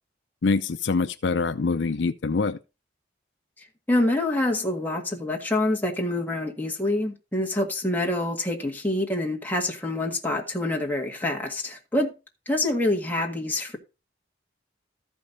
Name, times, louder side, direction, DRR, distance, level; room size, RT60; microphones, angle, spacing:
voice 1, 0.4-2.6, left 4 dB, 70° left, 0.5 m, -24 dB
voice 2, 3.9-12.1 12.5-13.8, left 1 dB, 10° left, 1.7 m, -26 dB
13.5 x 5.3 x 4.0 m
head